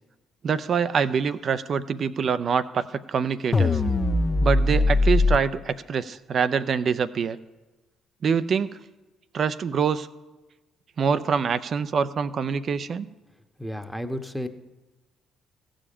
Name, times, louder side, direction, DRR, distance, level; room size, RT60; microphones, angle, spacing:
voice 1, 0.4-3.8 4.4-7.4 8.2-8.8 9.3-10.1 11.0-13.1, right 6 dB, 50° right, 13 dB, 0.5 m, -25 dB
sound 1, 3.5-5.4, left 2 dB, 30° left, 0.8 m, -20 dB
voice 2, 13.6-14.5, left 1 dB, ahead, 7 dB, 1.1 m, -32 dB
15.0 x 5.1 x 8.6 m, 1.1 s
hypercardioid pair, 50°, 0 cm